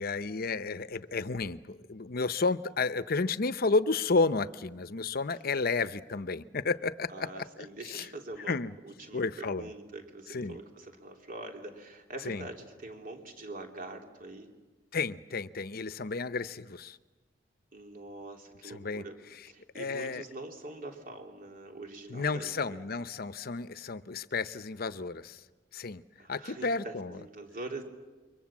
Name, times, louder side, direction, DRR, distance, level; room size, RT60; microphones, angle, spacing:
voice 1, 0.0-8.1 8.5-8.7 9.1-9.7 10.3-10.6 12.2-12.5 14.9-17.0 18.6-19.0 19.7-20.2 22.1-25.4 25.7-26.0 26.3-27.1, left 4 dB, 55° left, 14 dB, 0.8 m, -32 dB
voice 2, 7.1-8.6 8.8-14.5 17.7-19.2 19.5-22.8 26.2-27.8, right 2 dB, 50° right, 3 dB, 3.3 m, -44 dB
28.5 x 23.5 x 7.3 m, 1.3 s
head